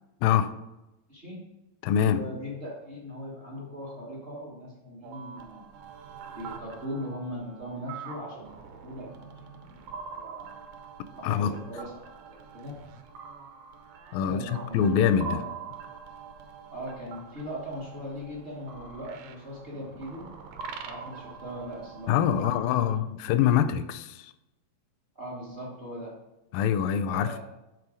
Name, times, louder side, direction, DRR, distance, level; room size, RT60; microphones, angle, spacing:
voice 1, 0.2-0.5 1.8-2.2 11.2-11.5 14.1-15.4 22.1-24.3 26.5-27.4, left 9 dB, 85° left, 12 dB, 2.2 m, -24 dB
voice 2, 1.1-1.4 2.0-5.6 6.4-9.1 9.7-10.6 11.2-12.8 14.2-15.7 16.7-20.3 20.8-23.2 25.1-26.2 27.1-27.4, equal, 60° right, -5 dB, 0.6 m, -40 dB
sound 1, 5.0-23.0, right 5 dB, 90° right, 2.5 m, -44 dB
7.6 x 3.9 x 4.9 m, 0.94 s
omnidirectional pair, 4.0 m